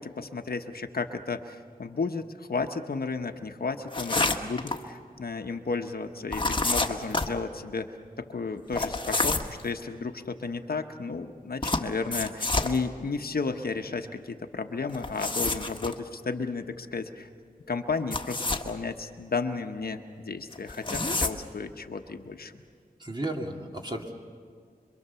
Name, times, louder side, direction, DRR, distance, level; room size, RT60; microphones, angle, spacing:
voice 1, 0.0-7.9 8.2-17.3 17.7-22.5, left 4 dB, 70° left, 6 dB, 1.1 m, -33 dB
sound 1, 3.9-4.8 6.3-7.3 8.7-9.6 11.6-12.8 14.9-15.9 18.0-18.7 20.5-21.3, left 2 dB, 30° left, 1.4 m, -28 dB
voice 2, 23.0-24.1, right 1 dB, 30° right, 1 dB, 2.5 m, -34 dB
26.0 x 23.0 x 6.9 m, 2.1 s
wide cardioid pair, 75°, 16 cm